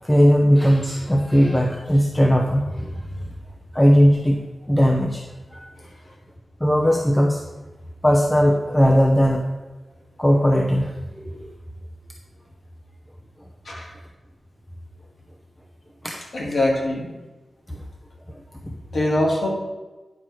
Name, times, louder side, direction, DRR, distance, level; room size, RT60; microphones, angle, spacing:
voice 1, 0.0-3.3 3.7-4.4 4.7-5.2 5.5-5.7 6.6-7.4 8.0-9.4 10.2-11.5 13.7-13.8 16.0-16.2 17.7-17.8 18.3-18.4, equal, 10° left, 1 dB, 0.7 m, -18 dB
voice 2, 16.3-17.1 18.9-19.5, left 1 dB, 60° left, -2 dB, 2.4 m, -22 dB
9.9 x 4.5 x 6.2 m, 1.2 s
wide cardioid pair, 155°, 0 cm